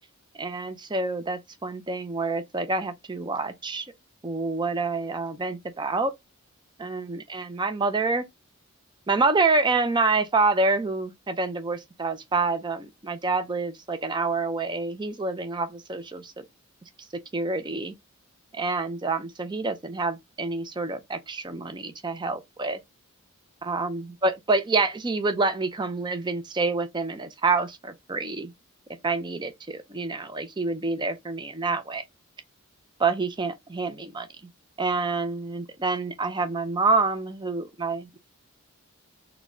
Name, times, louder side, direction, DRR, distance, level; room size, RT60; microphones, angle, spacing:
voice 1, 0.4-3.9 4.2-6.1 6.8-8.3 9.1-16.4 17.3-17.9 18.5-22.8 23.6-28.5 29.0-32.0 33.0-34.3 34.8-38.2, right 3 dB, 20° right, 0.5 m, -27 dB
4.1 x 2.2 x 3.6 m
head